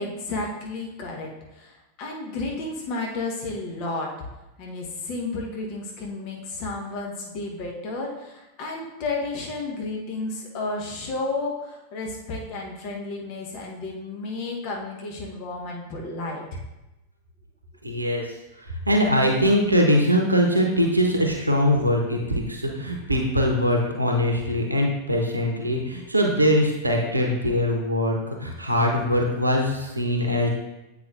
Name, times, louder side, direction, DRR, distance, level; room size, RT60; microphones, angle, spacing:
voice 1, 0.0-4.1 4.6-16.6, left 3 dB, 45° left, -1 dB, 0.9 m, -32 dB
voice 2, 17.8-18.3 18.6-30.5, equal, 85° right, 1 dB, 0.7 m, -22 dB
8.1 x 4.8 x 2.5 m, 0.97 s
figure-of-eight pair, 90°, 0 cm